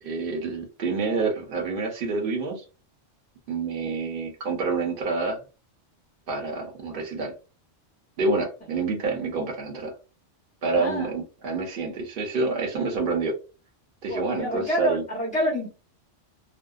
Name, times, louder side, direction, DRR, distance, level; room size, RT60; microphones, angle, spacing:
voice 1, 0.0-2.6 3.5-5.4 6.3-7.3 8.2-9.9 10.6-13.3 14.0-15.0, right 3 dB, 55° right, 0.9 m, -27 dB
voice 2, 10.8-11.1 14.1-15.7, equal, 10° left, 0.6 m, -27 dB
2.6 x 2.1 x 2.3 m
omnidirectional pair, 1.2 m